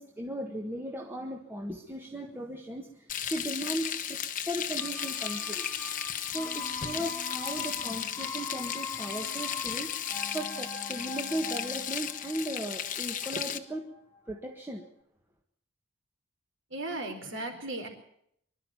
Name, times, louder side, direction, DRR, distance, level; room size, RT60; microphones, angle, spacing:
voice 1, 0.0-4.2 4.5-5.7 6.3-9.9 10.3-13.9 14.3-14.9, right 1 dB, 10° right, 1 dB, 1.6 m, -37 dB
Frying (food), 3.1-13.6, left 9 dB, 40° left, 1.2 m, -35 dB
sound 1, 4.8-14.5 14.8-14.9, left 4 dB, 10° left, 1.5 m, -42 dB
voice 2, 16.7-17.9, right 2 dB, 60° right, 5 dB, 4.6 m, -36 dB
25.0 x 12.0 x 9.3 m, 0.70 s
head